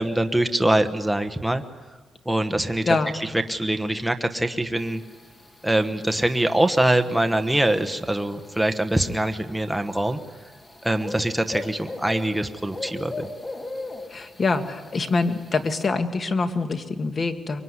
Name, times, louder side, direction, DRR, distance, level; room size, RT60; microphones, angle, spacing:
voice 1, 0.0-1.6 2.2-2.8 3.1-5.0 5.6-10.2 10.8-13.3, right 1 dB, 5° right, 6 dB, 1.2 m, -23 dB
voice 2, 2.8-3.2 14.1-17.6, left 3 dB, 35° left, 7 dB, 1.9 m, -25 dB
sound 1, 4.8-15.9, left 2 dB, 20° left, 1.9 m, -39 dB
24.5 x 23.0 x 9.7 m, 1.4 s
cardioid pair, 135°, 0 cm